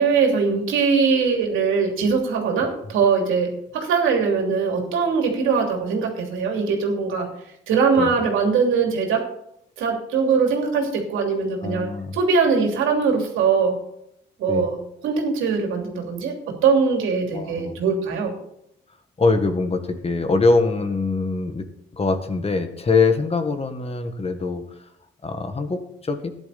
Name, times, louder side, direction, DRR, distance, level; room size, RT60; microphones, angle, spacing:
voice 1, 0.0-7.3 7.7-9.2 9.8-13.8 14.4-18.3, right 5 dB, 85° right, 2 dB, 3.1 m, -21 dB
voice 2, 11.6-12.2 14.5-14.7 17.3-17.8 19.2-21.7 21.9-24.6 25.2-26.3, left 3 dB, 30° left, 7 dB, 1.7 m, -23 dB
13.5 x 10.5 x 4.2 m, 0.75 s
cardioid pair, 90°, 20 cm